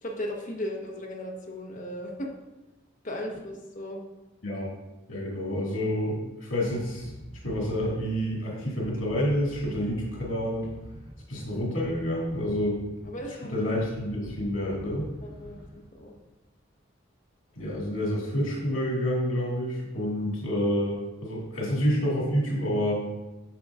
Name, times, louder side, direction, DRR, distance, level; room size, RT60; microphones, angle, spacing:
voice 1, 0.0-2.3 3.0-4.0 13.0-13.6 15.2-16.2, left 1 dB, 40° left, 0 dB, 1.2 m, -36 dB
voice 2, 5.1-7.1 7.4-10.7 11.3-12.8 13.5-15.1 17.6-23.0, equal, 85° left, -5 dB, 2.1 m, -28 dB
sound 1, 6.6-16.1, equal, 15° right, 1.4 m, -46 dB
8.4 x 6.5 x 2.5 m, 1.0 s
head